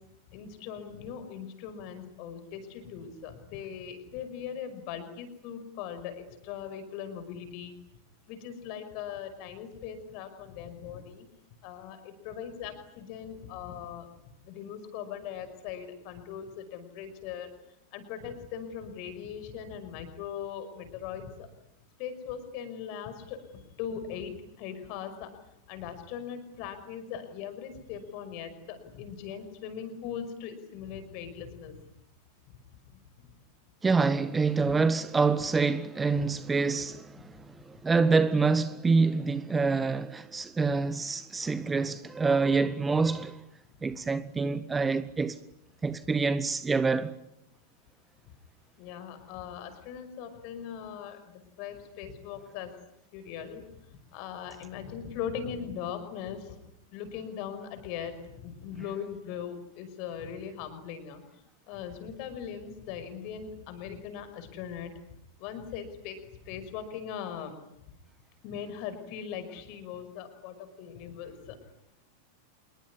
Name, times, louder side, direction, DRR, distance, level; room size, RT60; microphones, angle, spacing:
voice 1, 0.3-7.7 8.3-11.3 11.6-14.1 14.5-17.5 17.9-21.5 22.0-25.3 25.7-31.8 34.6-34.7 37.2-37.3 43.9-44.0 48.8-52.7 53.1-53.6 54.1-56.6 56.9-61.2 61.7-64.9 65.4-66.2 66.4-67.5 68.4-71.6, left 8 dB, 45° left, 5.5 m, -40 dB
voice 2, 33.8-43.4 43.8-45.4 45.8-47.1, right 4 dB, 15° right, 1.1 m, -26 dB
27.0 x 22.0 x 9.9 m
figure-of-eight pair, 90°, 0 cm